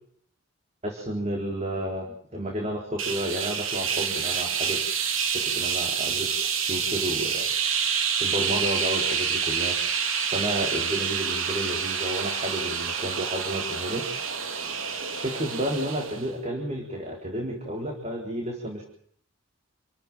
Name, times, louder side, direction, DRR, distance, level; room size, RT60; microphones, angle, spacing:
voice 1, 0.8-4.8 5.3-6.3 6.6-7.5 8.2-9.8 10.3-14.0 15.2-18.8, right 1 dB, 30° right, 1 dB, 4.0 m, -31 dB
sound 1, 3.0-16.3, right 7 dB, 90° right, 3.3 m, -28 dB
28.0 x 14.0 x 9.1 m, 0.64 s
head